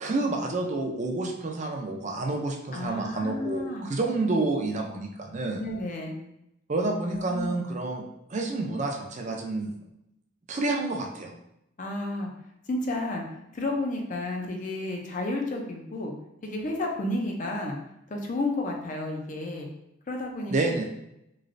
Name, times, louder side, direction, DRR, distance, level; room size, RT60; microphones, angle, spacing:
voice 1, 0.0-5.6 6.7-8.0 8.3-9.7 10.5-11.3 20.5-20.8, right 2 dB, 35° right, 2 dB, 0.4 m, -29 dB
voice 2, 2.7-3.9 5.6-6.2 7.1-7.6 11.8-12.3 12.7-16.1 16.4-17.8 18.1-19.7 20.1-20.5, left 2 dB, 40° left, 1 dB, 0.5 m, -31 dB
3.1 x 3.0 x 2.5 m, 0.83 s
head